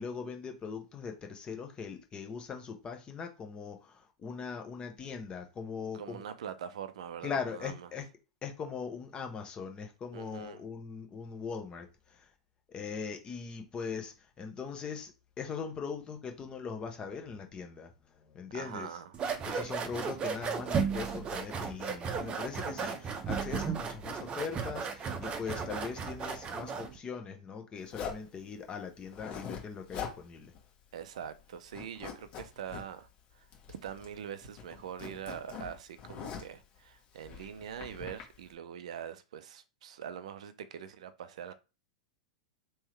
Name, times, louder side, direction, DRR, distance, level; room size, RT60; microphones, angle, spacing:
voice 1, 0.0-6.2 7.2-8.1 8.4-12.3 12.7-15.1 15.4-19.0 19.5-30.5, left 5 dB, 25° left, 1.0 m, -40 dB
voice 2, 5.9-7.7 10.1-10.6 18.5-19.1 19.5-19.7 30.9-33.1 33.4-41.5, right 8 dB, 70° right, 0.5 m, -43 dB
sound 1, 19.1-27.0, right 6 dB, 30° right, 0.7 m, -35 dB
Zipper (clothing), 27.9-28.3 29.0-29.6 29.9-30.2 30.5-30.6 31.0-31.4 31.7-32.8 33.5-34.2 34.4-36.6 37.2-38.2, left 7 dB, 50° left, 1.5 m, -42 dB
3.5 x 3.1 x 3.2 m
hypercardioid pair, 100°, 4 cm